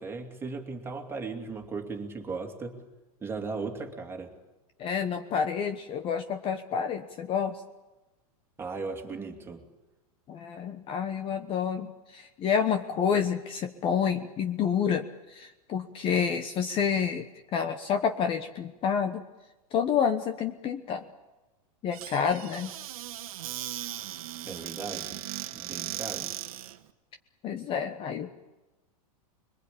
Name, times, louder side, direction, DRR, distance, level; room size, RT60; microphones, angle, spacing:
voice 1, 0.0-2.8 3.2-4.3 8.6-9.6 24.4-25.2 25.5-26.4, right 4 dB, 10° right, 3 dB, 2.7 m, -37 dB
voice 2, 4.8-7.6 10.3-11.9 12.1-15.0 15.3-17.2 17.5-19.2 19.7-21.0 21.8-22.7 27.4-28.3, left 7 dB, 30° left, 8 dB, 1.1 m, -28 dB
Squeak / Cupboard open or close, 21.9-26.8, right 13 dB, 65° right, 1.6 m, -38 dB
25.5 x 22.5 x 8.6 m, 1.1 s
supercardioid pair, 145°, 19 cm